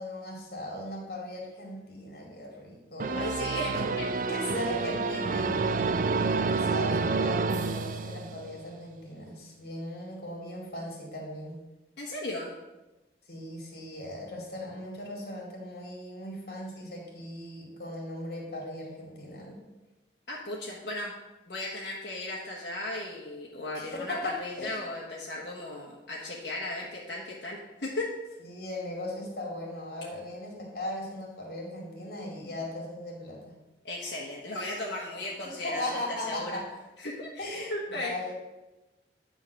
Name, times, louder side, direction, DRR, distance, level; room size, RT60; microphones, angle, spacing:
voice 1, 0.0-3.3 3.6-3.9 4.2-11.6 13.3-19.6 23.7-24.8 28.4-33.4 35.0-35.1 35.4-36.7 37.4-38.3, left 1 dB, 55° left, -1 dB, 2.5 m, -38 dB
sound 1, 3.0-8.6, right 4 dB, 45° right, 0.4 m, -29 dB
voice 2, 3.1-4.1 12.0-12.5 20.3-21.2 21.5-28.1 33.8-36.5 37.0-37.4 37.7-38.1, left 1 dB, 80° left, -4 dB, 1.4 m, -36 dB
10.5 x 3.9 x 6.8 m, 1.1 s
head